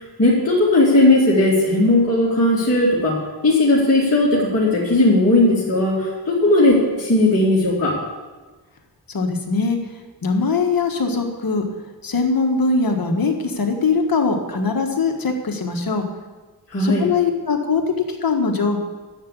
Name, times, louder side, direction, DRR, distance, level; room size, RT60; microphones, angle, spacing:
voice 1, 0.2-8.0 16.7-17.1, left 2 dB, 35° left, -7 dB, 2.5 m, -17 dB
voice 2, 9.1-9.8 10.2-11.6 12.0-16.0 16.8-17.8 18.2-18.8, left 4 dB, 55° left, 3 dB, 1.5 m, -21 dB
12.0 x 7.1 x 8.4 m, 1.3 s
wide cardioid pair, 165°, 42 cm